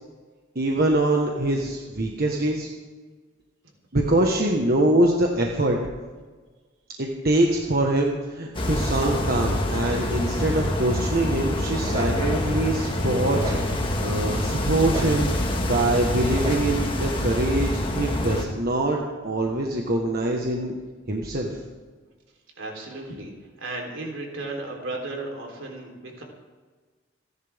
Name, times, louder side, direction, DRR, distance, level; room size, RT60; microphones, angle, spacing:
voice 1, 0.5-2.7 3.9-5.8 7.0-15.3 15.6-20.7 21.1-21.6, right 1 dB, 50° right, 0 dB, 1.5 m, -24 dB
sound 1, 8.5-18.5, left 1 dB, 25° left, 1.8 m, -26 dB
sound 2, 11.2-17.2, right 1 dB, 25° right, 3.4 m, -37 dB
voice 2, 22.6-23.3 23.6-26.2, right 2 dB, 75° right, 0 dB, 3.8 m, -34 dB
29.0 x 11.0 x 3.7 m, 1.4 s
head